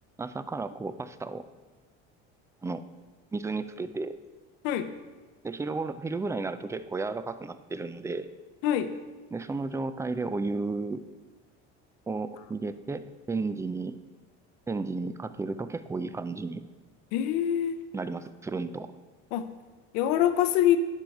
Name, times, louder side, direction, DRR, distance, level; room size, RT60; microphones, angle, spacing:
voice 1, 0.2-1.5 2.6-2.8 3.3-4.2 5.4-8.3 9.3-11.0 12.1-14.0 14.7-16.7 17.9-18.9, right 3 dB, 10° right, 13 dB, 0.3 m, -33 dB
voice 2, 17.1-17.8 19.3-19.4 19.9-20.8, left 11 dB, 85° left, 10 dB, 0.7 m, -24 dB
10.5 x 4.5 x 5.2 m, 1.3 s
supercardioid pair, 105°, 30 cm